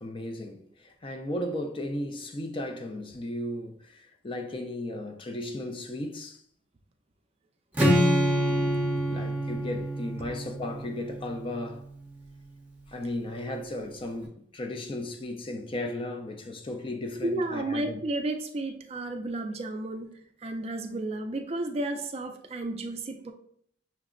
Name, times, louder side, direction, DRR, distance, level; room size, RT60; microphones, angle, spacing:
voice 1, 0.0-6.4 9.1-11.9 12.9-18.0, left 1 dB, 30° left, 0.4 m, -35 dB
Strum, 7.7-11.9, equal, 10° right, 0.8 m, -26 dB
voice 2, 17.2-23.3, right 2 dB, 35° right, 0.4 m, -32 dB
5.8 x 2.1 x 3.7 m
head